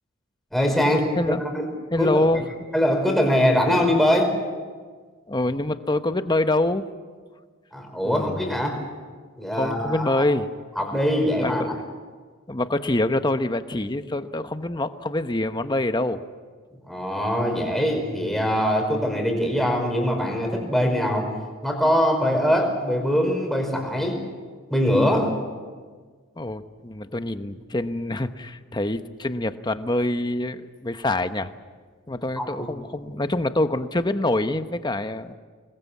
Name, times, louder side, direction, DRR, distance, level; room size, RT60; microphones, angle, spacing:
voice 1, 0.5-1.7 2.0-2.3 2.7-4.3 7.7-8.8 9.4-10.2 10.8-11.7 16.9-21.3 21.6-24.2 24.7-25.3 32.4-32.7, equal, ahead, 2 dB, 4.8 m, -22 dB
voice 2, 1.9-2.4 5.3-6.8 8.0-8.5 9.6-10.5 11.4-11.5 12.5-16.2 26.4-31.5 32.1-35.3, left 1 dB, 20° left, 9 dB, 0.9 m, -25 dB
26.0 x 21.0 x 8.5 m, 1.5 s
head